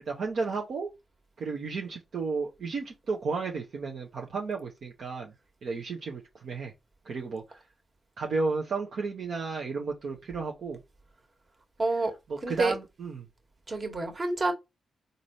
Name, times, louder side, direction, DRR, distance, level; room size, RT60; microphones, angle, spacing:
voice 1, 0.1-0.9 1.4-5.3 5.6-6.7 7.0-7.6 8.2-10.8 12.3-13.2, right 4 dB, 65° right, 0.9 m, -33 dB
voice 2, 11.8-12.1 12.4-12.7 13.7-14.5, right 2 dB, 40° right, 1.6 m, -28 dB
3.9 x 2.6 x 3.1 m
supercardioid pair, 45°, 0 cm